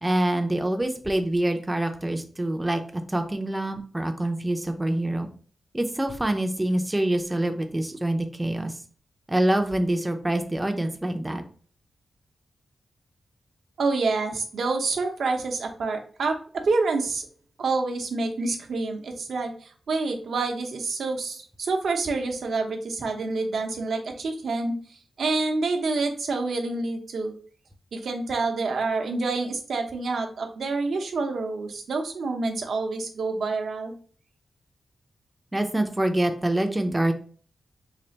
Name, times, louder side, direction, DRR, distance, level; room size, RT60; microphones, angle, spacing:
voice 1, 0.0-5.3 5.7-8.8 9.3-11.4 35.5-37.1, right 1 dB, 15° right, 6 dB, 0.5 m, -25 dB
voice 2, 13.8-17.3 17.6-24.8 25.2-27.3 27.9-33.9, right 3 dB, 75° right, 4 dB, 0.7 m, -27 dB
3.3 x 2.4 x 3.9 m, 0.43 s
wide cardioid pair, 90°, 0 cm